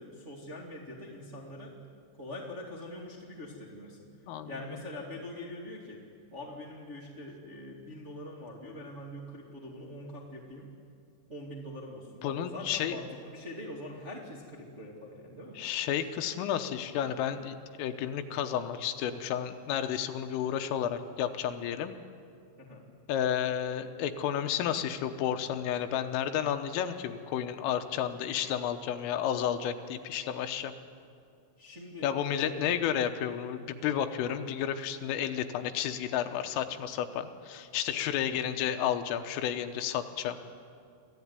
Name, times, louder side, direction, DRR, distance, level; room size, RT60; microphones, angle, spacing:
voice 1, 0.0-1.7 2.2-4.1 4.4-6.0 6.3-10.7 11.3-15.6 22.6-22.8 31.6-32.8, left 1 dB, 30° right, -4 dB, 1.4 m, -43 dB
voice 2, 12.2-13.0 15.6-21.9 23.1-30.7 32.0-40.4, left 9 dB, 80° left, 8 dB, 3.5 m, -31 dB
24.5 x 15.0 x 9.6 m, 2.5 s
omnidirectional pair, 5.9 m